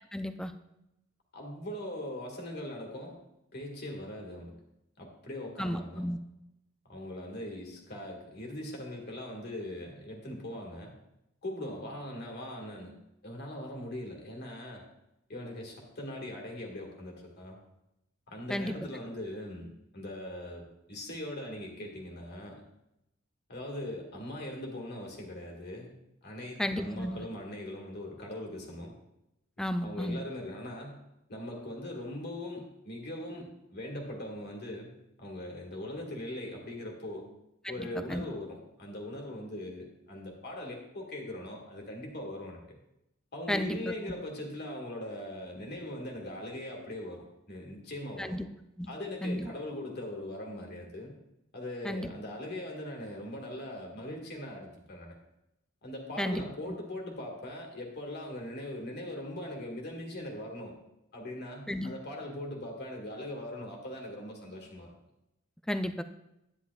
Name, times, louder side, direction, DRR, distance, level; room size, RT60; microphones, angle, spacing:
voice 1, 0.1-0.5 5.6-6.2 18.5-18.7 26.6-27.2 29.6-30.2 37.8-38.2 43.5-43.8 48.2-48.5 48.8-48.9 49.2-49.5 51.8-52.1 56.2-56.4 61.7-61.9 65.7-66.0, equal, 5° left, 9 dB, 0.4 m, -32 dB
voice 2, 1.3-3.2 3.5-4.6 5.0-6.1 6.9-10.9 11.4-12.9 13.2-14.8 15.3-17.6 18.3-22.6 23.5-25.9 26.2-28.9 29.8-31.0 31.3-34.9 35.2-37.3 37.7-42.8 43.3-48.4 48.9-51.1 51.5-55.2 55.8-60.7 61.1-64.9, left 1 dB, 50° left, 0 dB, 1.9 m, -40 dB
11.0 x 9.8 x 2.4 m, 0.87 s
head